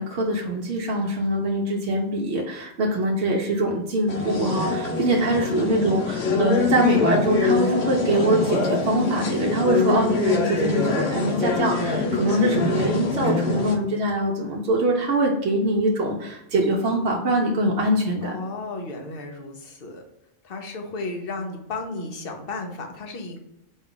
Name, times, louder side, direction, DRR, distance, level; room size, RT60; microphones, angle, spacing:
voice 1, 0.0-18.3, right 1 dB, 65° right, -2 dB, 0.8 m, -23 dB
sound 1, 4.1-13.7, left 4 dB, 90° left, 1.2 m, -24 dB
voice 2, 12.0-12.3 18.2-20.0 20.4-23.4, left 2 dB, 55° left, 3 dB, 0.9 m, -34 dB
4.3 x 2.3 x 3.7 m, 0.86 s
omnidirectional pair, 1.2 m